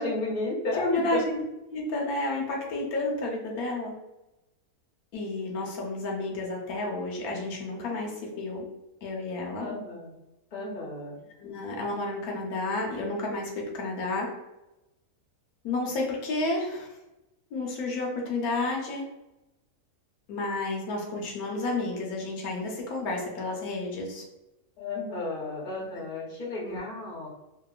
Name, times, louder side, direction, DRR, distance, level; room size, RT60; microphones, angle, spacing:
voice 1, 0.0-1.2 9.6-10.1 10.5-11.1 24.8-27.3, left 2 dB, 40° left, -4 dB, 0.8 m, -33 dB
voice 2, 0.8-1.4 1.7-3.9 5.1-8.6 9.0-9.7 11.4-14.3 15.6-16.9 17.5-19.0 20.3-24.2 26.6-26.8, left 2 dB, 75° left, -1 dB, 1.1 m, -31 dB
2.9 x 2.5 x 2.3 m, 0.95 s
omnidirectional pair, 1.7 m